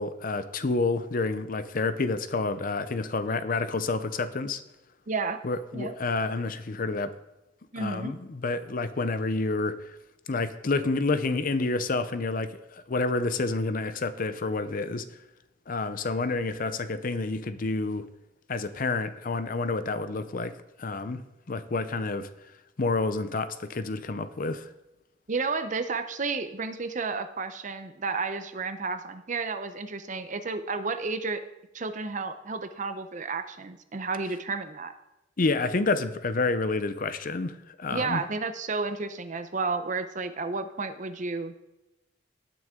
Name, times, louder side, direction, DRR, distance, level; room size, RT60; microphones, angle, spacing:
voice 1, 0.0-4.6 5.4-7.1 7.8-9.8 10.3-15.0 15.7-18.1 18.5-22.3 22.8-24.7 35.4-38.2, left 3 dB, 45° left, 12 dB, 0.6 m, -29 dB
voice 2, 5.1-5.4 5.7-5.9 7.7-8.1 25.3-31.4 31.7-34.9 37.9-41.5, right 4 dB, 40° right, 9 dB, 0.7 m, -32 dB
18.0 x 6.2 x 3.7 m, 0.93 s
head